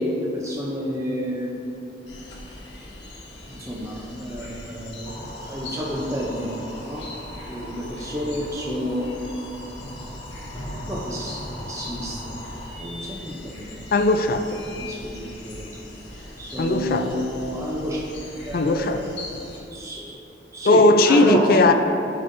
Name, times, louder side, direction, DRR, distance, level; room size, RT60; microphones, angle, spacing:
voice 1, 0.0-1.8 3.5-7.2 7.5-9.7 10.9-12.4 12.8-13.8 14.7-15.8 16.4-18.1 18.4-19.1 19.7-20.2 20.5-21.7, equal, 15° right, -3 dB, 0.6 m, -30 dB
sound 1, 2.1-19.6, left 2 dB, 75° left, 1.2 m, -41 dB
sound 2, 5.0-12.7, equal, 30° left, 0.9 m, -39 dB
voice 2, 13.9-14.6 16.6-17.3 18.5-19.1 20.6-21.7, left 2 dB, 55° left, 8 dB, 0.4 m, -18 dB
11.0 x 5.1 x 2.6 m, 2.8 s
head